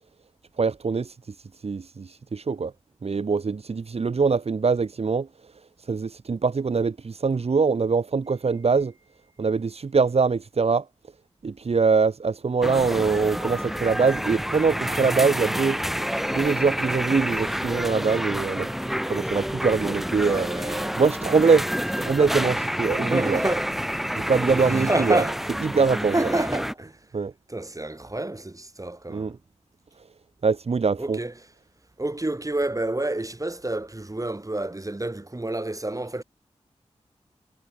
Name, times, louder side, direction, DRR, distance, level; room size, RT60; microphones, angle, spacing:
voice 1, 0.6-1.2 1.6-2.7 3.0-5.3 5.8-8.9 9.4-10.9 11.4-15.8 16.3-20.5 21.0-23.4 24.1-25.2 25.6-26.3 27.1-27.3 29.1-29.3 30.4-31.2, right 5 dB, 60° right, 1.1 m, -23 dB
sound 1, 12.6-26.7, equal, ahead, 2.5 m, -28 dB
voice 2, 20.2-21.0 23.0-23.7 24.5-25.4 26.1-27.0 27.5-29.4 31.0-31.3 32.0-36.2, right 2 dB, 30° right, 6.8 m, -28 dB
cardioid pair, 40°, 12 cm